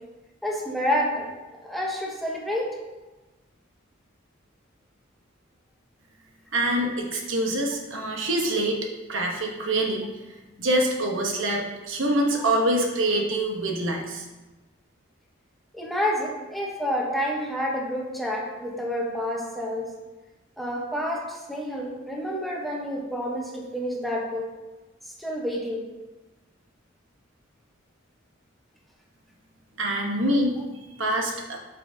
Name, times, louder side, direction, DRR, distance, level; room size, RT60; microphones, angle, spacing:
voice 1, 0.4-1.3 1.6-2.7 12.4-12.5 15.7-19.8 20.6-24.4 25.2-25.8, equal, ahead, -3 dB, 1.0 m, -29 dB
voice 2, 6.5-8.8 9.1-10.1 10.6-14.2 29.8-30.5 31.0-31.6, right 1 dB, 70° right, 1 dB, 1.0 m, -25 dB
8.1 x 5.9 x 2.7 m, 1.1 s
head